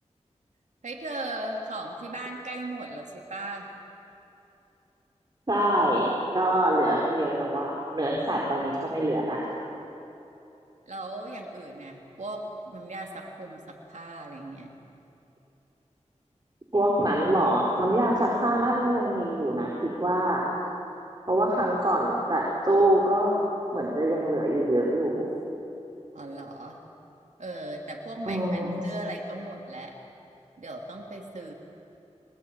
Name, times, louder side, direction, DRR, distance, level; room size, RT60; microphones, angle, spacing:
voice 1, 0.8-3.7 10.9-14.7 26.1-26.8 27.4-30.0 30.6-31.5, right 1 dB, 80° right, 0 dB, 3.4 m, -37 dB
voice 2, 5.5-6.1 6.3-9.4 16.7-20.5 21.3-23.4 23.7-25.2 28.3-28.8, right 1 dB, 35° right, -3 dB, 4.5 m, -24 dB
25.0 x 20.5 x 9.1 m, 2.9 s
wide cardioid pair, 55°, 12 cm